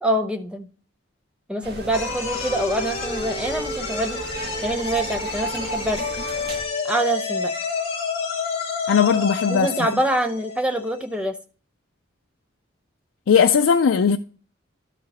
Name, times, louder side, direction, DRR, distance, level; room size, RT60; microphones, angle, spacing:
voice 1, 0.0-0.7 1.5-4.2 4.6-6.0 6.8-7.5 9.5-11.4, right 1 dB, 5° right, 0.6 m, -25 dB
sound 1, 1.6-6.6, right 1 dB, 50° right, 1.8 m, -36 dB
sound 2, 1.9-11.2, left 4 dB, 30° left, 2.2 m, -29 dB
voice 2, 8.9-9.7 13.3-14.2, left 6 dB, 85° left, 0.4 m, -18 dB
12.0 x 5.0 x 4.1 m
head